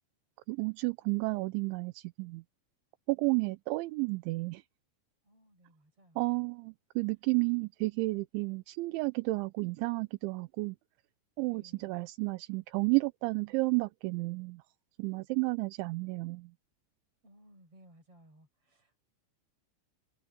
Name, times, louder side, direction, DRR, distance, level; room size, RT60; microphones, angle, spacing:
voice 1, 0.5-2.4 3.1-4.6 6.2-10.8 11.4-14.6 15.0-16.5, right 25 dB, 80° right, 2.9 m, -32 dB
voice 2, 5.2-6.4 11.4-12.0 17.2-19.0, right 1 dB, 30° right, 8.0 m, -60 dB
omnidirectional pair, 5.5 m